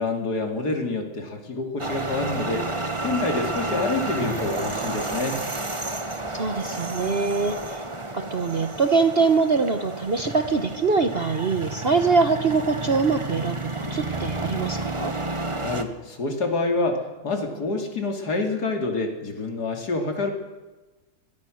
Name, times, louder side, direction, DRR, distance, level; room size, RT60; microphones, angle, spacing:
voice 1, 0.0-2.7 3.0-5.4 15.6-20.3, left 3 dB, 80° left, 3 dB, 3.4 m, -27 dB
sound 1, 1.8-15.8, right 2 dB, 20° right, 1.5 m, -31 dB
voice 2, 6.3-7.8 8.1-15.1, right 4 dB, 40° right, 8 dB, 1.3 m, -23 dB
23.0 x 22.0 x 6.5 m, 1.2 s
omnidirectional pair, 1.7 m